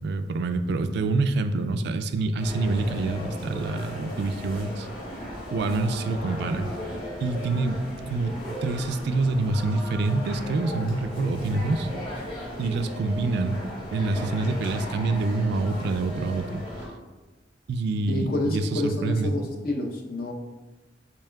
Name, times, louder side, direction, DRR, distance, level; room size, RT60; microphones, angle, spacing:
voice 1, 0.0-4.9 5.5-6.7 7.2-11.9 12.6-13.6 13.9-16.6 17.7-19.3, right 3 dB, 65° right, 9 dB, 0.3 m, -26 dB
sound 1, 2.4-16.9, equal, 30° left, 1.2 m, -36 dB
voice 2, 18.1-20.3, left 2 dB, 55° left, 1 dB, 0.7 m, -28 dB
7.0 x 3.1 x 2.2 m, 1.2 s
head